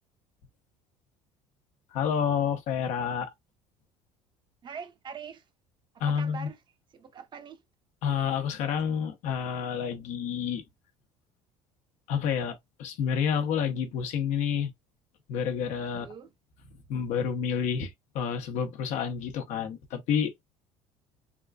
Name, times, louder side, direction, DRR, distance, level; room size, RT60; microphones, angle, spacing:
voice 1, 1.9-3.3 6.0-6.5 8.0-10.6 12.1-14.7 15.3-16.1 16.9-20.4, left 7 dB, 70° left, 0.9 m, -29 dB
voice 2, 4.6-5.4 6.0-6.6 6.9-7.6 15.9-16.3, right 6 dB, 40° right, 0.8 m, -43 dB
3.6 x 2.5 x 2.2 m
supercardioid pair, 100°, 13 cm